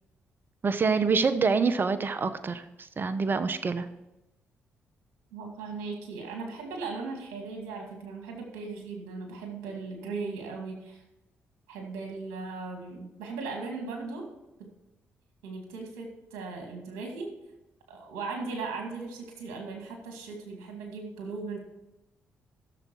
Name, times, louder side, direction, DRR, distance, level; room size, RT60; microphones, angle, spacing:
voice 1, 0.6-2.6 3.0-3.9, right 5 dB, 45° right, 12 dB, 0.9 m, -26 dB
voice 2, 5.3-11.0 11.7-14.3 14.6-14.7 15.4-17.3 17.9-21.6, right 4 dB, 85° right, 2 dB, 2.3 m, -38 dB
15.0 x 6.9 x 4.6 m, 0.96 s
supercardioid pair, 55°, 5 cm